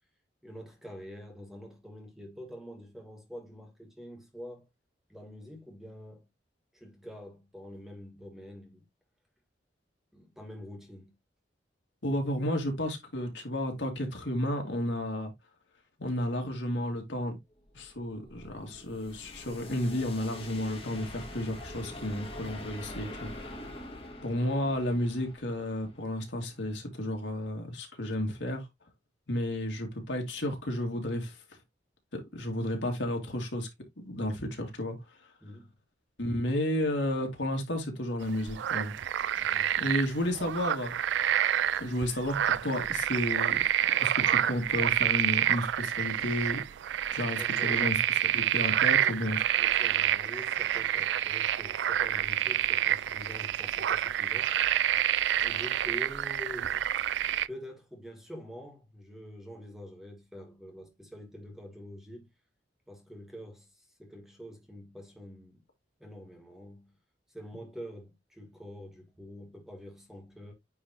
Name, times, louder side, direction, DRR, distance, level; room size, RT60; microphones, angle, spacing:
voice 1, 0.4-4.7 5.1-6.3 6.7-8.9 10.1-11.1 35.4-35.8 39.4-39.9 47.4-47.9 48.6-49.1 49.6-54.6 55.4-56.8 57.5-62.3 62.9-65.6 66.0-66.9 67.3-70.5, equal, ahead, 1.7 m, -46 dB
voice 2, 12.0-15.3 16.0-17.4 17.7-23.7 24.2-28.7 29.3-31.4 32.1-33.7 34.0-35.2 36.2-38.9 39.8-41.2 41.8-43.6 44.0-46.6 47.1-49.4, left 1 dB, 85° left, 2.3 m, -32 dB
sound 1, 17.6-26.5, left 1 dB, 30° left, 1.8 m, -45 dB
sound 2, 38.2-57.5, right 11 dB, 75° right, 0.3 m, -28 dB
9.2 x 3.6 x 2.9 m
head